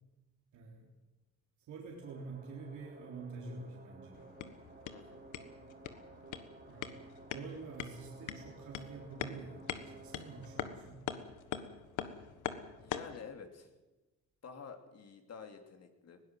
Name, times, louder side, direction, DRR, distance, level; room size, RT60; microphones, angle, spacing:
voice 1, 0.5-0.9 1.7-4.2 6.7-7.0 7.3-11.1, right 4 dB, 75° right, -1 dB, 3.7 m, -47 dB
sound 1, 2.0-10.8, right 3 dB, 30° right, 3.7 m, -55 dB
sound 2, 4.1-13.2, left 9 dB, 80° left, 1.5 m, -44 dB
voice 2, 4.9-5.2 12.8-13.7 14.4-16.2, left 6 dB, 55° left, 5 dB, 3.1 m, -49 dB
20.5 x 17.0 x 7.7 m, 1.1 s
cardioid pair, 90°, 30 cm